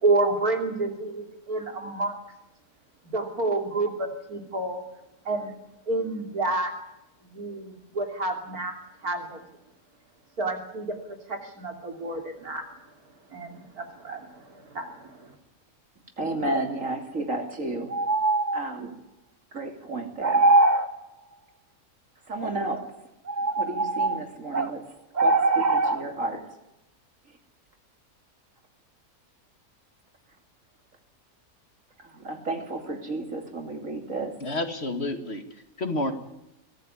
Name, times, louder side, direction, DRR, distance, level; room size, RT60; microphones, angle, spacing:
voice 1, 0.0-2.2 3.1-4.8 5.3-5.5 5.9-6.7 7.2-9.4 10.4-12.7 13.3-15.3, right 2 dB, 85° right, 4 dB, 3.6 m, -29 dB
sound 1, 10.5-10.6 17.9-18.7 20.2-20.9 22.7-22.8 23.3-24.7 25.1-26.0, right 2 dB, 30° right, 1.4 m, -22 dB
voice 2, 16.2-17.9 18.5-19.0 19.5-20.5 22.3-22.9 23.6-24.9 25.2-26.5 27.3-27.4 32.0-34.4, right 2 dB, 60° right, 5 dB, 3.1 m, -32 dB
voice 3, 34.4-36.1, left 2 dB, 45° left, 7 dB, 2.2 m, -30 dB
23.0 x 14.5 x 9.9 m, 0.88 s
omnidirectional pair, 1.6 m